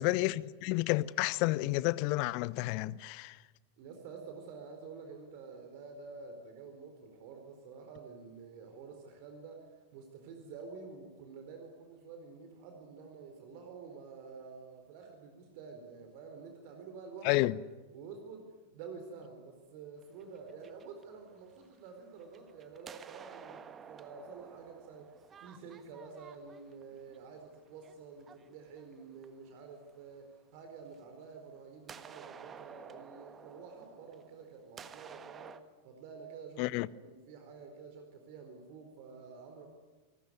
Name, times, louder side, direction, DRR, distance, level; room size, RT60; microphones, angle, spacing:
voice 1, 0.0-3.4 17.2-17.5 36.6-36.9, left 20 dB, 45° left, 0.8 m, -30 dB
voice 2, 3.8-17.5 17.9-18.4 18.7-39.7, right 5 dB, 45° right, 4.3 m, -49 dB
sound 1, 20.0-21.8 22.2-29.5 30.9-31.0 31.9-35.6, right 7 dB, 25° right, 1.5 m, -52 dB
28.5 x 19.5 x 9.8 m
figure-of-eight pair, 90°, 0 cm